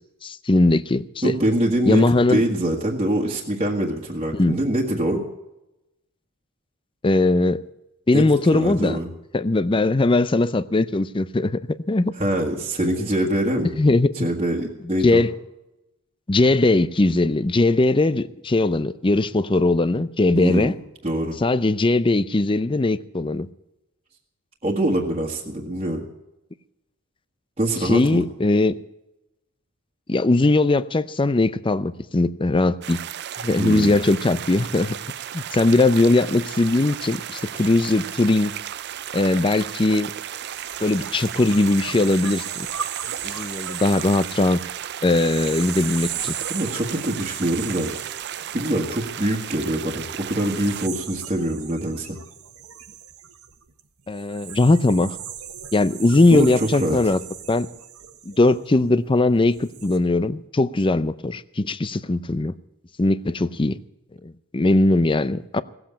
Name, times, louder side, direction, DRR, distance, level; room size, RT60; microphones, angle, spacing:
voice 1, 0.2-1.3 1.8-2.4 4.3-4.6 7.0-7.6 8.1-9.0 9.3-12.1 13.8-14.3 15.0-15.3 16.3-20.7 21.4-23.5 27.8-28.8 30.1-33.0 33.4-35.0 35.3-38.5 39.1-40.1 40.8-42.5 43.2-44.6 45.0-46.4 54.1-55.2 55.7-57.2 57.5-57.7 58.3-62.5 63.0-63.8 64.2-65.6, left 2 dB, 25° left, 0.5 m, -20 dB
voice 2, 1.2-5.2 8.1-8.3 8.5-9.1 12.1-13.8 14.1-15.3 20.3-20.8 21.0-21.4 24.6-26.0 27.6-28.2 33.6-34.0 46.5-47.9 48.5-52.2 56.3-57.0, right 1 dB, 25° right, 1.7 m, -24 dB
sound 1, 32.8-50.9, right 10 dB, 50° right, 0.5 m, -34 dB
sound 2, 40.4-49.6 50.2-59.0 59.5-60.0, right 9 dB, 80° right, 1.4 m, -37 dB
17.5 x 7.9 x 8.7 m
head